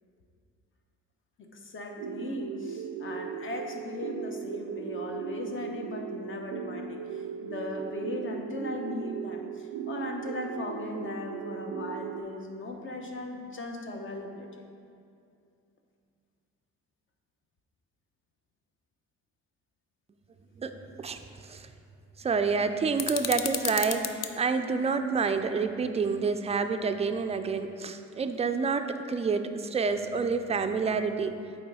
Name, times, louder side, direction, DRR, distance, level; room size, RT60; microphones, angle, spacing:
voice 1, 1.4-14.5, left 2 dB, 40° left, 3 dB, 0.9 m, -38 dB
sound 1, 2.0-12.2, right 8 dB, 85° right, 0.5 m, -37 dB
voice 2, 20.6-21.7 22.2-31.3, right 5 dB, 20° right, 8 dB, 0.3 m, -28 dB
sound 2, 23.0-24.3, left 9 dB, 60° left, 0.5 m, -32 dB
8.6 x 3.1 x 4.7 m, 2.4 s
cardioid pair, 90°, 30 cm